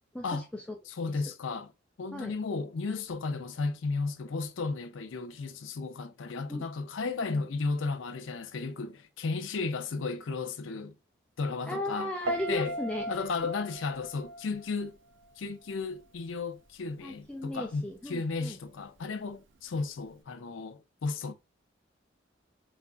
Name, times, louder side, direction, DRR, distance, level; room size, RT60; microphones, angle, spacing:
voice 1, 0.1-0.8 1.1-1.2 2.1-2.3 6.5-6.6 7.0-7.4 11.7-13.1 17.0-18.6, left 1 dB, 5° left, 0.3 m, -36 dB
voice 2, 1.0-1.7 2.0-10.9 11.4-12.1 12.5-12.8 13.1-15.0 15.4-21.3, left 4 dB, 80° left, 0.5 m, -34 dB
Piano, 12.2-15.3 15.6-16.1, right 1 dB, 75° right, 0.4 m, -38 dB
4.0 x 2.5 x 2.3 m
head